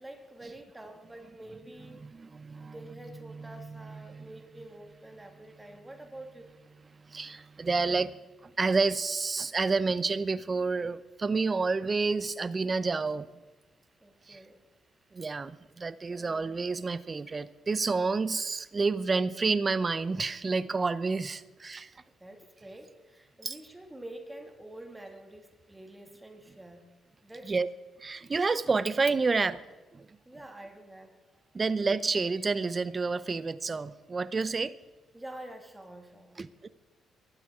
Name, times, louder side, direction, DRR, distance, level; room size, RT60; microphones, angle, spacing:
voice 1, 0.0-2.1 2.6-6.6 14.0-14.6 16.1-16.6 22.0-26.9 27.2-27.5 30.3-31.1 31.5-31.6 34.5-34.6 35.1-36.4, right 1 dB, 10° right, 4 dB, 2.1 m, -47 dB
voice 2, 2.0-2.7 3.3-4.3 7.1-8.1 8.4-13.3 14.3-14.4 15.1-21.9 23.4-23.6 27.4-27.7 28.0-29.6 29.9-30.1 31.5-34.7 36.4-36.7, right 4 dB, 30° right, 15 dB, 0.6 m, -29 dB
23.0 x 12.5 x 3.7 m, 1.2 s
cardioid pair, 90°, 0 cm